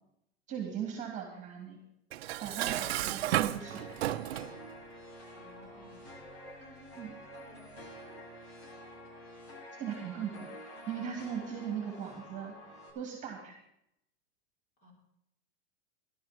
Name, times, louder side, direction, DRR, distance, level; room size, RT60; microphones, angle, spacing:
voice 1, 0.5-1.8 2.4-3.8 7.0-7.1 9.8-10.5 10.9-12.6 12.9-13.6, right 8 dB, 20° right, 2 dB, 2.8 m, -38 dB
Dishes pots and pans, 2.1-4.6, right 14 dB, 70° right, 0.8 m, -33 dB
sound 1, 2.6-12.9, left 1 dB, 85° left, 6.2 m, -49 dB
voice 2, 5.3-6.0 6.6-7.7 14.8-14.9, left 1 dB, 25° left, -1 dB, 5.0 m, -57 dB
16.5 x 12.0 x 4.5 m, 0.78 s
supercardioid pair, 150°, 33 cm